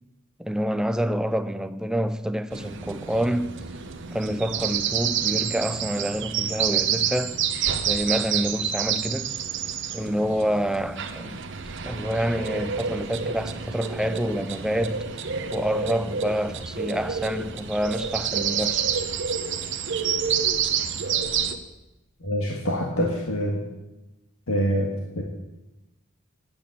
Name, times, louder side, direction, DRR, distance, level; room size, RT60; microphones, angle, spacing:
voice 1, 0.4-3.7 4.1-7.4 7.9-9.4 9.9-11.4 11.8-15.3 15.5-18.9, equal, 5° right, 0.4 m, -27 dB
sound 1, 2.5-21.6, right 7 dB, 55° right, 0.9 m, -28 dB
voice 2, 22.2-23.6 24.5-25.2, equal, 80° left, 1.7 m, -25 dB
10.5 x 8.7 x 8.4 m
head